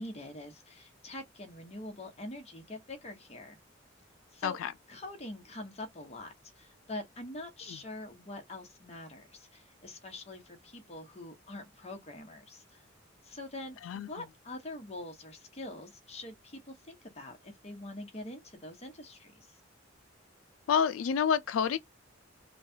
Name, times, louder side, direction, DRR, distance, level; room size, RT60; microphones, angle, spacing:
voice 1, 0.0-3.6 4.3-4.6 4.9-12.8 13.2-19.5, left 1 dB, 35° left, 1.0 m, -44 dB
voice 2, 20.7-21.8, left 7 dB, 85° left, 0.3 m, -28 dB
3.1 x 2.2 x 2.7 m
head